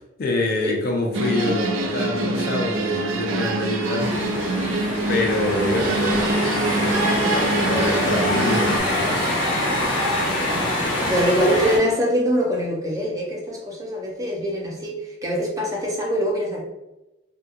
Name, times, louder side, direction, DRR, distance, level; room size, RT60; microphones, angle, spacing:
voice 1, 0.2-4.6 5.1-6.4 6.7-9.3, left 2 dB, 50° left, 1 dB, 0.4 m, -26 dB
sound 1, 1.1-8.8, right 2 dB, 85° right, 0.4 m, -24 dB
sound 2, 4.0-11.8, left 1 dB, 80° left, 1.0 m, -24 dB
voice 2, 11.1-16.6, equal, 15° right, -2 dB, 0.4 m, -23 dB
2.8 x 2.2 x 2.3 m, 0.96 s
head